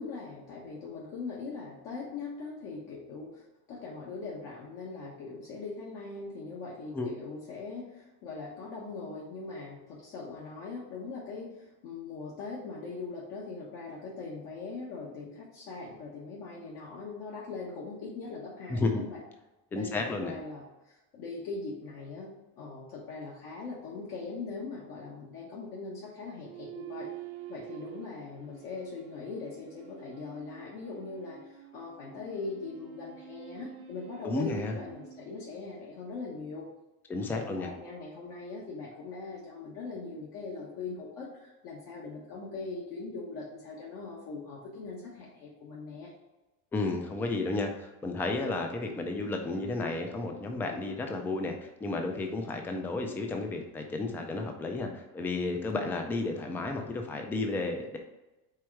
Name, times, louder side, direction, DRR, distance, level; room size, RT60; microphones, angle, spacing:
voice 1, 0.0-19.2 19.7-27.1 27.5-36.7 37.3-46.1, left 4 dB, 60° left, -4 dB, 1.3 m, -41 dB
voice 2, 18.7-19.0 19.7-20.3 34.2-34.8 37.1-37.7 46.7-58.0, left 3 dB, 5° left, 4 dB, 0.3 m, -32 dB
sound 1, 26.4-36.0, right 10 dB, 40° right, 0.6 m, -48 dB
4.6 x 4.3 x 4.7 m, 1.0 s
cardioid pair, 155°, 37 cm